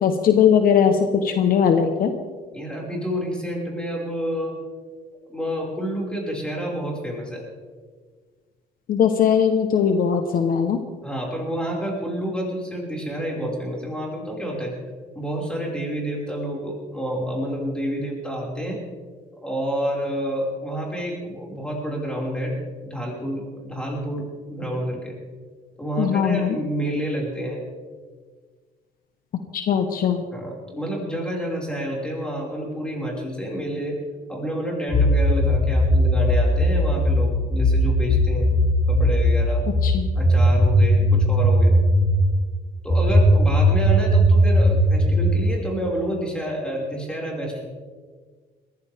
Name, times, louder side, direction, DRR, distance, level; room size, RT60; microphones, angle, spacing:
voice 1, 0.0-2.1 8.9-10.8 26.0-26.6 29.5-30.2 39.8-40.1, left 7 dB, 60° left, 7 dB, 1.2 m, -19 dB
voice 2, 2.5-4.6 5.3-7.4 11.0-14.7 15.1-18.8 19.4-25.1 25.8-27.7 30.3-34.0 34.3-38.6 38.9-39.7 40.2-41.8 42.8-47.7, equal, 5° left, -2 dB, 5.7 m, -29 dB
sound 1, 34.9-42.2 42.9-45.4, equal, 25° left, 3.7 m, -18 dB
21.0 x 15.0 x 3.6 m, 1.5 s
cardioid pair, 110°, 17 cm